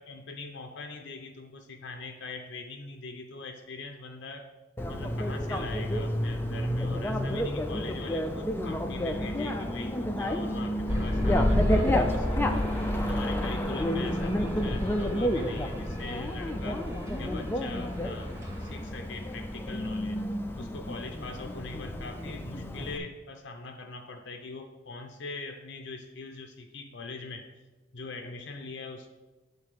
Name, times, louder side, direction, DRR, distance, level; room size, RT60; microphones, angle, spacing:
voice 1, 0.0-4.5 4.9-12.7 13.1-16.9 17.2-20.2 20.6-27.5 27.9-29.1, left 3 dB, 60° left, 4 dB, 0.6 m, -42 dB
Bicycle, 4.8-23.0, equal, 10° left, 0.4 m, -31 dB
sound 1, 10.9-18.9, left 1 dB, 15° right, 1.0 m, -32 dB
7.5 x 4.0 x 6.5 m, 1.2 s
head